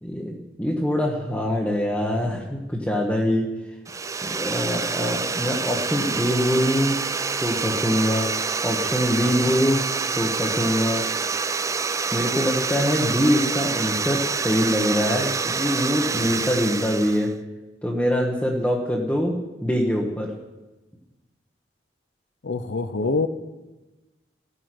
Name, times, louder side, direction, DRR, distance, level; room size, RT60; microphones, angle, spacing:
voice 1, 0.0-3.5 4.2-7.0 7.4-8.3 8.6-9.8 10.1-11.0 12.1-17.3 17.8-19.3 19.6-20.3, equal, 5° left, -3 dB, 1.2 m, -23 dB
sound 1, 3.9-17.3, right 5 dB, 15° right, 0.3 m, -27 dB
voice 2, 22.4-23.3, left 3 dB, 75° left, 10 dB, 0.7 m, -25 dB
15.0 x 9.7 x 6.0 m, 1.1 s
head